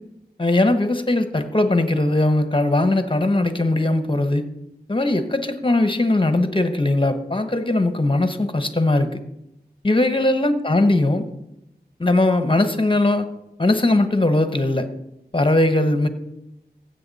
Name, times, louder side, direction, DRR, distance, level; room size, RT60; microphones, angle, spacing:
voice 1, 0.4-4.4 4.9-9.2 9.8-11.3 12.0-13.3 13.6-14.9 15.3-16.1, left 2 dB, 30° left, 9 dB, 1.0 m, -19 dB
15.5 x 7.9 x 4.1 m, 0.88 s
wide cardioid pair, 50°, 17 cm